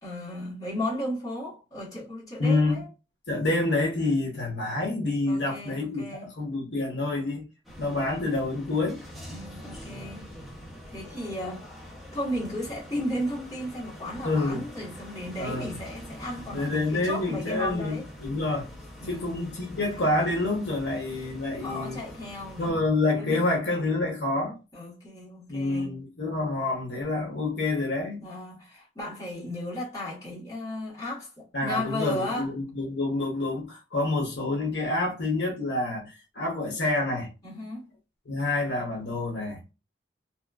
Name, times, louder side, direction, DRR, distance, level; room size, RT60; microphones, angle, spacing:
voice 1, 0.0-2.9 5.3-6.4 9.3-10.3 10.9-11.7 12.1-18.1 19.0-19.5 21.6-22.7 23.2-23.4 24.7-26.0 28.2-32.5 37.4-37.9, left 1 dB, 20° left, 1.2 m, -35 dB
voice 2, 2.4-2.8 3.3-7.4 7.8-9.0 14.2-14.6 15.4-15.7 16.5-18.7 19.1-22.0 22.6-24.6 25.5-28.2 31.5-37.3 38.3-39.6, left 2 dB, 65° left, 0.8 m, -27 dB
sound 1, 7.6-22.7, equal, ahead, 0.6 m, -44 dB
2.9 x 2.2 x 2.3 m
head